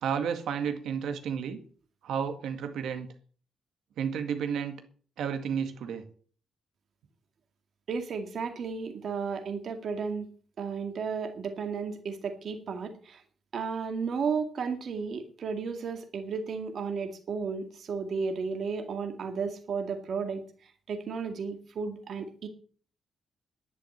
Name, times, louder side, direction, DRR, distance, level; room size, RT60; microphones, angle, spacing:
voice 1, 0.0-1.6 2.0-3.1 4.0-4.8 5.2-6.0, right 7 dB, 70° right, 7 dB, 2.0 m, -31 dB
voice 2, 7.9-10.3 10.6-13.2 13.5-20.4 20.9-22.5, right 5 dB, 45° right, 5 dB, 2.1 m, -33 dB
11.0 x 11.0 x 7.3 m, 0.44 s
cardioid pair, 180°, 0 cm